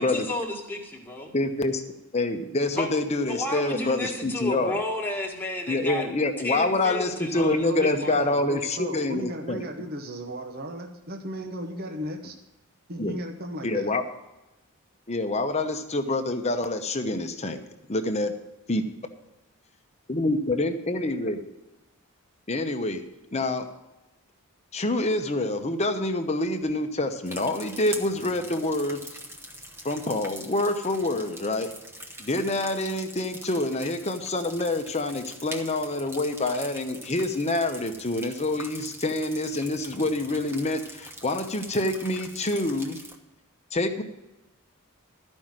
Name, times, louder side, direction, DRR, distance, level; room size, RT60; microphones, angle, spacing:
voice 1, 0.0-1.3 2.7-2.9 3.3-6.0 6.4-8.4, left 1 dB, 10° left, -1 dB, 1.7 m, -32 dB
voice 2, 1.3-1.8 2.1-4.8 5.7-9.6 13.0-13.2 13.6-14.0 15.1-17.6 17.9-18.3 18.7-18.8 20.1-21.4 22.5-23.0 23.3-23.7 24.7-29.0 29.8-31.7 32.2-43.0 43.7-44.0, left 2 dB, 30° left, 7 dB, 0.9 m, -26 dB
voice 3, 7.4-12.3 12.9-13.9, equal, 45° right, 4 dB, 0.9 m, -35 dB
sound 1, 27.2-43.2, right 1 dB, 10° right, 0.9 m, -43 dB
13.5 x 5.4 x 7.5 m, 0.98 s
head